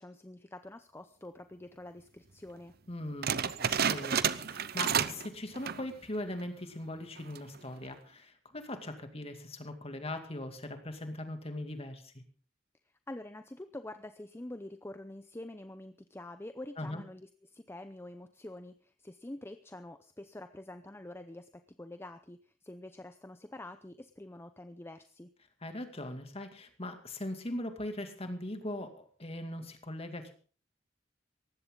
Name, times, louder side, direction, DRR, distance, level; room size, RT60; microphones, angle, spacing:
voice 1, 0.0-2.7 13.1-25.3, left 1 dB, 15° left, 10 dB, 0.6 m, -46 dB
voice 2, 2.9-12.1 16.8-17.0 25.6-30.3, left 1 dB, 30° left, 6 dB, 2.5 m, -40 dB
sound 1, 3.2-5.3 5.5-5.9 6.4-6.5 7.2-7.6, right 7 dB, 55° right, 0.8 m, -30 dB
18.5 x 15.5 x 3.9 m, 0.40 s
head